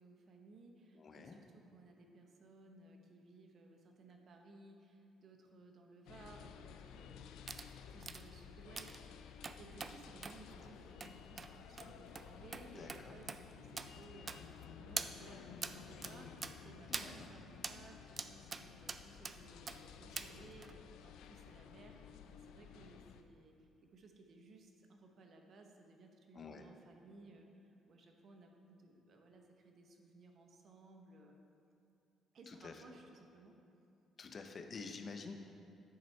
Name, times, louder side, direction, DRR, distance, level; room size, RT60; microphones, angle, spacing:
voice 1, 0.0-7.2 7.9-31.4 32.3-33.6, right 2 dB, 55° right, 3 dB, 0.9 m, -59 dB
voice 2, 0.9-1.4 12.7-13.2 16.9-17.3 26.3-26.6 32.5-32.8 34.2-35.3, left 4 dB, 45° left, 5 dB, 0.6 m, -49 dB
sound 1, 6.1-23.2, left 7 dB, 80° left, 0.3 m, -54 dB
sound 2, 7.5-7.7 8.0-8.2 8.8-9.0 9.4-9.9 10.2-10.4 11.0-11.1 11.4-11.5 11.8-11.9 12.2-12.3 12.5-12.6 12.9-13.0 13.3-13.4 13.8-13.9 14.3-14.6 15.0-15.1 15.6-15.7 16.0-16.1 16.4-16.5 16.9-17.1 17.6-17.8 18.2-18.6 18.9-19.4 19.7-19.8 20.2-20.3 20.6-20.7, right 4 dB, 35° right, 0.3 m, -43 dB
9.4 x 4.1 x 4.4 m, 2.6 s
cardioid pair, 85°, 0 cm